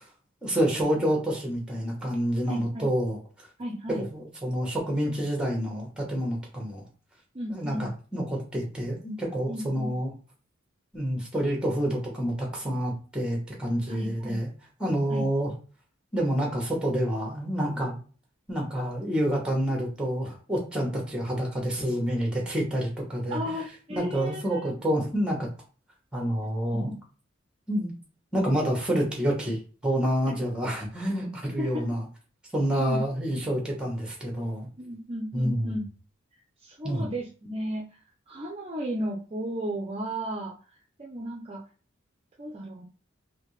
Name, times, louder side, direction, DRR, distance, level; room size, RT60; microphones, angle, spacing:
voice 1, 0.4-3.2 4.1-6.8 7.5-10.1 10.9-14.5 14.8-15.5 16.1-18.0 18.5-23.4 23.9-25.5 26.1-26.9 27.7-27.9 28.3-32.0 32.5-34.7 35.3-35.7 36.8-37.1, equal, 5° right, 0 dB, 1.0 m, -28 dB
voice 2, 2.5-2.9 3.6-4.0 7.3-7.9 9.5-9.9 13.9-14.4 15.1-15.2 23.3-24.7 26.7-26.8 30.3-30.4 31.6-31.8 32.8-33.0 34.8-35.8 36.6-38.0 38.3-40.5 41.0-41.6 42.4-42.8, equal, 30° right, -1 dB, 0.5 m, -34 dB
3.4 x 2.7 x 3.1 m, 0.38 s
head